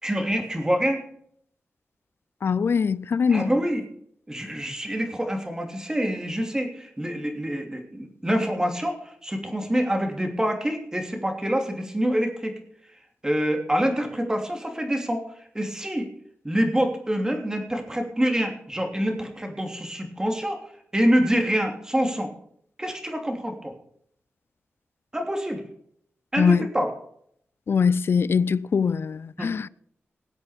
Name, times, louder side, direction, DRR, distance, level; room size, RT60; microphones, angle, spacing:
voice 1, 0.0-1.1 3.3-3.8 4.3-12.5 13.2-15.2 15.5-16.1 16.4-20.6 20.9-22.3 22.8-23.7 25.1-25.6 26.3-26.9 29.4-29.5, equal, 15° right, 3.1 m, -26 dB
voice 2, 2.4-3.5 26.4-26.7 27.7-29.7, left 6 dB, 60° left, 0.4 m, -22 dB
19.5 x 8.1 x 5.1 m
wide cardioid pair, 100°, 5 cm